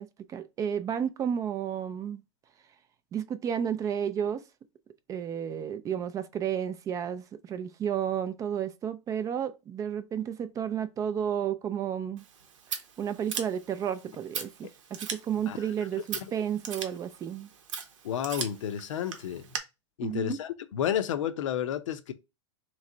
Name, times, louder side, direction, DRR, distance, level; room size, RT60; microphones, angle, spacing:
voice 1, 0.0-2.2 3.1-4.4 5.1-12.3 13.0-17.5 20.0-20.4, right 8 dB, 20° right, 0.3 m, -32 dB
Scissors, 12.2-19.6, right 6 dB, 85° right, 0.9 m, -40 dB
voice 2, 18.0-19.4 20.0-22.1, left 10 dB, 80° left, 0.6 m, -31 dB
3.2 x 3.1 x 3.8 m
hypercardioid pair, 130°, 16 cm